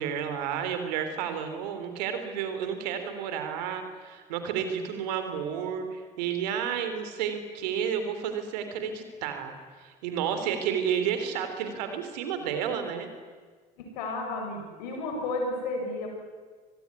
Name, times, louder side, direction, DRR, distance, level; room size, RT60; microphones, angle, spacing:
voice 1, 0.0-13.1, right 8 dB, 85° right, 8 dB, 3.5 m, -31 dB
voice 2, 13.8-16.1, left 2 dB, 90° left, 2 dB, 6.8 m, -32 dB
26.0 x 19.0 x 9.8 m, 1.5 s
hypercardioid pair, 60°, 21 cm